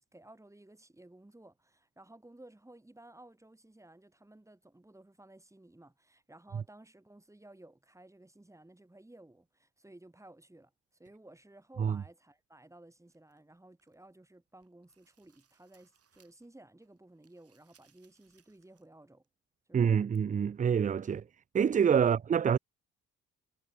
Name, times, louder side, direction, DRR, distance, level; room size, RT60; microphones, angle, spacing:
voice 1, 0.0-10.7 11.0-19.2 19.7-20.1, right 1 dB, 10° right, 5.7 m, -56 dB
sound 1, 13.1-14.1 14.5-16.5 16.8-18.9 19.2-19.3 20.1-20.2, right 7 dB, 50° right, 7.6 m, -71 dB
voice 2, 19.7-21.2 21.5-22.6, right 7 dB, 25° right, 0.4 m, -26 dB
cardioid pair, 90°, 30 cm